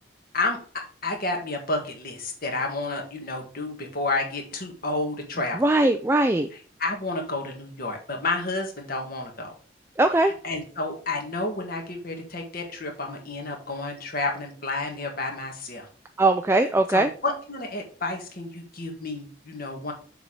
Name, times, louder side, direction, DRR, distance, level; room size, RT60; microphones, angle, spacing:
voice 1, 1.0-5.6 6.5-9.5 10.2-15.9 16.9-19.9, left 2 dB, 50° left, 2 dB, 1.8 m, -30 dB
voice 2, 5.6-6.5 10.0-10.3 16.2-17.1, right 2 dB, 15° right, 7 dB, 0.3 m, -20 dB
6.9 x 4.2 x 4.8 m, 0.42 s
head